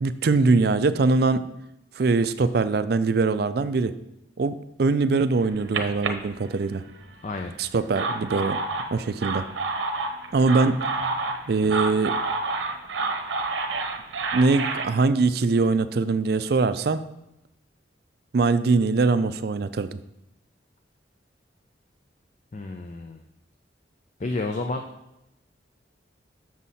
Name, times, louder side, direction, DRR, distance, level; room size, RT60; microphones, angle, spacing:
voice 1, 0.0-1.5 2.0-3.9 4.4-6.8 7.6-8.6 8.9-9.4 10.3-10.8 11.5-12.2 14.3-17.0 18.3-20.0, right 3 dB, 55° right, 12 dB, 0.4 m, -22 dB
sound 1, 5.3-7.0 7.7-14.9, right 3 dB, 75° right, 0.8 m, -29 dB
voice 2, 7.2-7.5 22.5-23.2 24.2-24.9, left 2 dB, 40° left, 4 dB, 0.4 m, -30 dB
7.3 x 6.3 x 4.1 m, 0.87 s
head